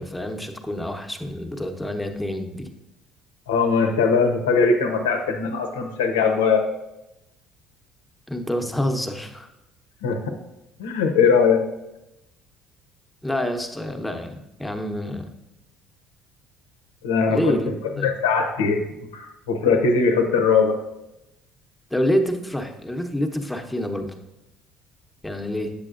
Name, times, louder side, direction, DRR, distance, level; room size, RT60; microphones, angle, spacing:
voice 1, 0.0-2.7 8.3-9.5 13.2-15.3 17.3-17.7 18.0-18.1 21.9-24.1 25.2-25.7, equal, 5° left, 4 dB, 0.9 m, -27 dB
voice 2, 3.5-6.6 10.0-10.2 10.8-11.6 17.0-17.5 18.0-18.8 19.1-20.7, left 5 dB, 90° left, 5 dB, 0.7 m, -20 dB
8.3 x 6.6 x 2.5 m, 0.92 s
hypercardioid pair, 65°, 0 cm